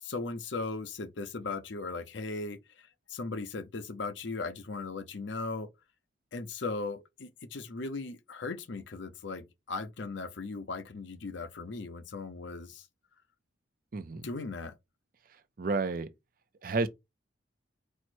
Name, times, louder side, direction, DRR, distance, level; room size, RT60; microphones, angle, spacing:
voice 1, 0.0-5.7 6.3-12.9 14.2-14.7, left 3 dB, 65° left, 0.6 m, -38 dB
voice 2, 13.9-14.3 15.6-16.1 16.6-16.9, right 3 dB, 45° right, 0.5 m, -30 dB
4.5 x 2.1 x 4.4 m
head